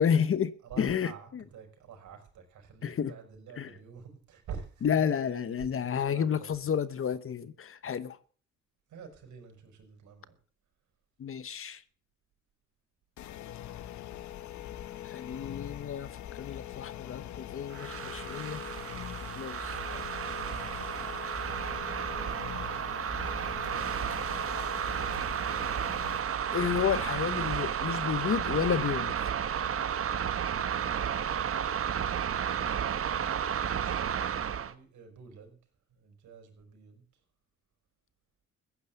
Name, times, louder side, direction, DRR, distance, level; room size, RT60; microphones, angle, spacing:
voice 1, 0.0-1.4 2.8-3.1 3.6-3.7 4.8-8.2 11.2-11.8 15.0-16.1 16.3-18.6 19.3-20.0 26.5-29.1, left 8 dB, 45° left, 1.0 m, -31 dB
voice 2, 0.6-6.6 8.9-10.4 33.5-35.6 35.9-37.0, right 6 dB, 75° right, 5.5 m, -48 dB
sound 1, 13.2-26.2, left 11 dB, 70° left, 1.0 m, -43 dB
sound 2, 17.7-34.7, right 8 dB, 50° right, 1.2 m, -32 dB
15.0 x 10.0 x 7.1 m
cardioid pair, 90°, 30 cm